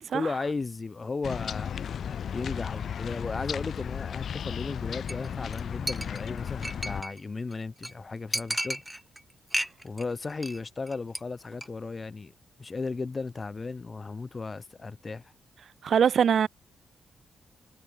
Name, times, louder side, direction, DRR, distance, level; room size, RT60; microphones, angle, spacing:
voice 1, 0.1-1.8 2.3-8.8 9.8-12.3 12.6-15.2, left 4 dB, 25° left, 2.1 m, -35 dB
sound 1, 1.2-7.0, left 8 dB, 60° left, 3.4 m, -34 dB
Chink clink, 5.1-5.3 5.5-5.6 5.9-7.2 7.5-7.6 7.8-7.9 8.3-9.2 9.5-10.0 10.3-10.6 10.9-11.2 11.5-11.7, right 1 dB, 5° right, 0.9 m, -33 dB
voice 2, 15.8-16.5, right 7 dB, 55° right, 1.1 m, -23 dB
wide cardioid pair, 150°, 0 cm